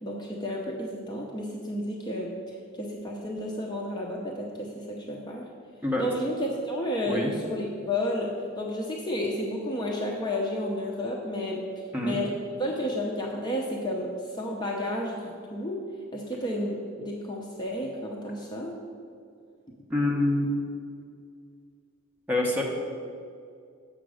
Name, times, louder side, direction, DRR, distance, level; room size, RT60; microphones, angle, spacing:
voice 1, 0.0-5.5 6.0-15.8 16.1-18.8, left 1 dB, 20° left, -1 dB, 0.6 m, -32 dB
voice 2, 19.9-20.8 22.3-22.6, left 1 dB, 10° right, -1 dB, 0.9 m, -26 dB
6.9 x 5.1 x 6.3 m, 2.3 s
head